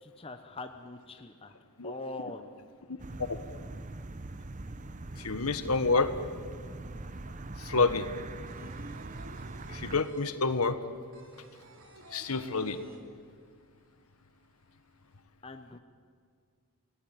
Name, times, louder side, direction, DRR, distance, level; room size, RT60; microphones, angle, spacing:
voice 1, 0.0-1.5 1.8-2.5 15.4-15.8, left 2 dB, 25° left, 7 dB, 0.9 m, -42 dB
voice 2, 2.9-3.4 5.2-6.1 7.6-8.1 9.7-10.8 12.1-12.8, left 3 dB, 85° left, 11 dB, 1.5 m, -28 dB
sound 1, 3.0-10.0, right 2 dB, 35° right, 0.7 m, -42 dB
sound 2, 8.0-13.7 13.9-14.0 14.3-15.1, right 1 dB, 65° right, 3.7 m, -52 dB
29.0 x 18.5 x 9.3 m, 2.1 s
head